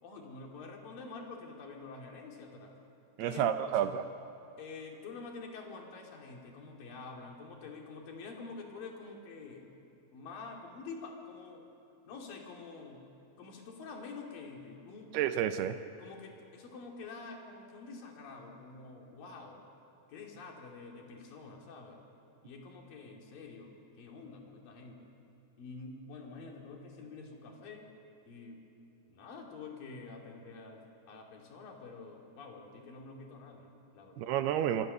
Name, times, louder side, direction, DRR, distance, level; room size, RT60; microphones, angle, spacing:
voice 1, 0.0-2.7 3.2-3.9 4.6-9.8 10.1-11.7 12.1-13.0 13.4-15.2 16.0-19.6 20.1-22.0 22.4-25.1 25.6-27.8 28.3-28.6 29.1-34.3, left 4 dB, 55° left, 0 dB, 4.2 m, -47 dB
voice 2, 3.2-4.0 15.1-15.8 34.2-34.9, right 10 dB, 75° right, 9 dB, 2.6 m, -30 dB
25.5 x 25.0 x 6.8 m, 2.7 s
omnidirectional pair, 5.1 m